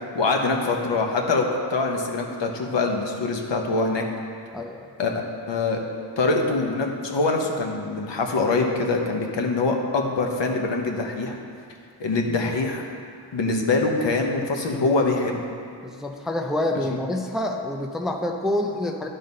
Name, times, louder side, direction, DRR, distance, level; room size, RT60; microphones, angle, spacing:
voice 1, 0.1-4.1 5.0-5.1 5.5-5.8 6.2-11.3 12.0-12.8 13.3-15.4, left 3 dB, 70° left, 2 dB, 1.0 m, -24 dB
voice 2, 4.5-4.8 15.8-19.1, left 1 dB, ahead, 3 dB, 0.4 m, -27 dB
11.0 x 3.9 x 5.3 m, 2.3 s
wide cardioid pair, 95°, 44 cm